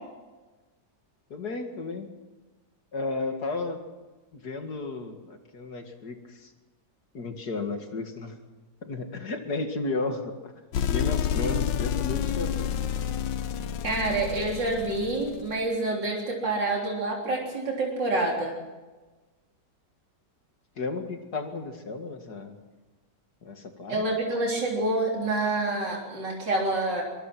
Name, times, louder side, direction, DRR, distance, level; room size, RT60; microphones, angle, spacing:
voice 1, 1.3-2.1 2.9-3.8 4.3-6.5 7.1-8.4 8.8-10.5 10.9-12.8 20.8-22.6 23.4-24.0, left 3 dB, 60° left, 5 dB, 2.7 m, -33 dB
sound 1, 10.7-15.5, left 9 dB, 85° left, 1.6 m, -29 dB
voice 2, 13.8-18.5 23.9-27.0, right 2 dB, 80° right, -1 dB, 4.2 m, -27 dB
24.0 x 21.5 x 6.1 m, 1.2 s
omnidirectional pair, 1.9 m